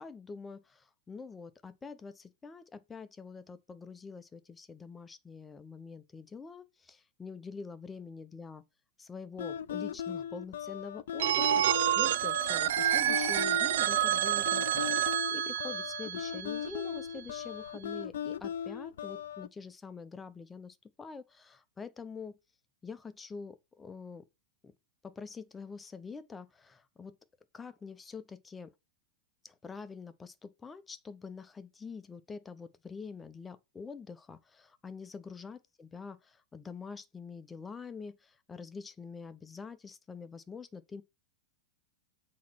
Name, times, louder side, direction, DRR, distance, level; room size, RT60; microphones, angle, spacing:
voice 1, 0.0-8.6 9.0-22.4 22.8-24.3 24.6-24.7 25.0-27.2 27.5-28.7 29.4-41.0, left 5 dB, 15° left, 0.8 m, -46 dB
sound 1, 9.4-19.5, left 9 dB, 85° left, 0.6 m, -38 dB
Telephone, 11.2-17.0, right 12 dB, 75° right, 0.5 m, -29 dB
8.2 x 3.2 x 6.2 m
hypercardioid pair, 130°, 0 cm